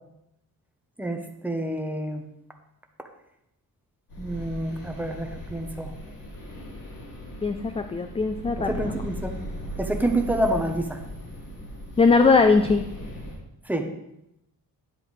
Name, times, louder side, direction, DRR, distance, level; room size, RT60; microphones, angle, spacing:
voice 1, 1.0-2.2 4.2-5.9 8.6-9.3 9.8-11.0 13.7-13.9, right 1 dB, 5° right, 4 dB, 0.8 m, -28 dB
sound 1, 4.1-13.4, equal, 65° left, 2.5 m, -38 dB
voice 2, 7.4-8.9 12.0-12.8, left 4 dB, 15° left, 7 dB, 0.4 m, -20 dB
10.5 x 7.7 x 3.2 m, 0.83 s
wide cardioid pair, 140°, 36 cm